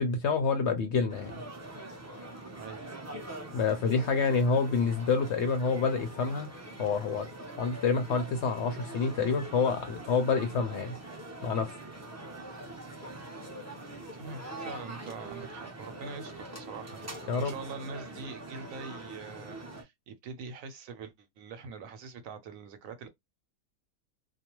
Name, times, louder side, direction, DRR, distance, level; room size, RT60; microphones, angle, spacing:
voice 1, 0.0-1.3 3.5-6.5 6.8-7.3 7.6-11.0 11.4-11.7 17.3-17.5, left 5 dB, 65° left, 0.7 m, -28 dB
sound 1, 1.1-19.8, right 2 dB, 25° right, 0.3 m, -43 dB
voice 2, 14.1-23.1, right 4 dB, 70° right, 1.0 m, -44 dB
2.4 x 2.3 x 2.9 m
omnidirectional pair, 1.5 m